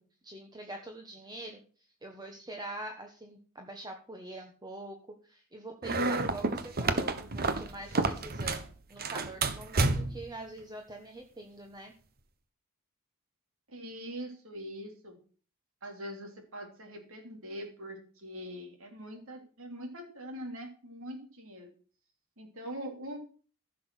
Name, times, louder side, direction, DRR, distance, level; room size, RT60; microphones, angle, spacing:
voice 1, 0.0-5.0 5.2-11.9, right 1 dB, 20° right, 3 dB, 1.3 m, -44 dB
sound 1, 5.8-8.7 9.0-10.3, right 3 dB, 45° right, 1.1 m, -30 dB
voice 2, 13.7-15.2 15.8-21.7 22.4-23.2, equal, 65° right, 3 dB, 3.3 m, -43 dB
15.0 x 6.3 x 6.3 m, 0.41 s
head